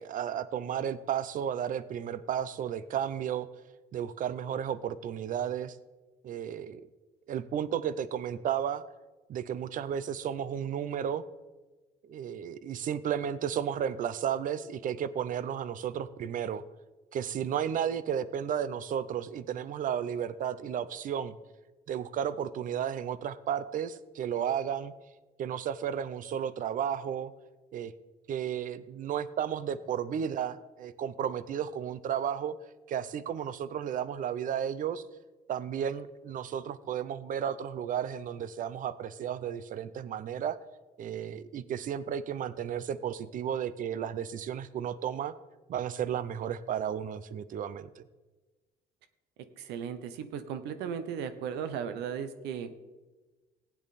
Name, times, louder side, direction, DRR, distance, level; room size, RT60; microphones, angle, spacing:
voice 1, 0.0-3.5 3.9-5.8 6.2-6.8 7.3-8.8 9.3-11.2 12.1-16.6 17.1-21.3 21.9-24.9 25.4-27.3 27.7-27.9 28.3-32.5 32.9-35.0 35.5-40.6 41.0-45.3 45.7-48.0, right 9 dB, 50° right, 16 dB, 0.7 m, -33 dB
voice 2, 49.6-52.7, right 7 dB, 85° right, 11 dB, 1.0 m, -36 dB
15.5 x 8.7 x 4.2 m, 1.2 s
cardioid pair, 110°, 17 cm